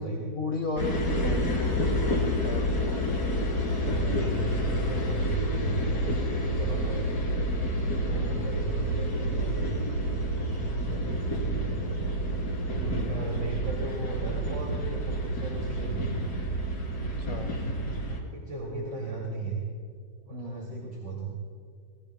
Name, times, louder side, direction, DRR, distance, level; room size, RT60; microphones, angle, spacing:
voice 1, 0.0-3.0 8.0-8.5 12.8-13.3 17.0-17.5 20.3-20.9, left 2 dB, 45° left, 4 dB, 1.4 m, -35 dB
sound 1, 0.8-18.2, equal, 60° left, 3.8 m, -29 dB
voice 2, 3.9-7.3 7.8-9.7 10.0-12.0 12.6-16.5 18.1-19.6 20.2-21.3, right 3 dB, 70° right, -3 dB, 3.2 m, -36 dB
27.5 x 21.0 x 2.2 m, 2.2 s
omnidirectional pair, 1.9 m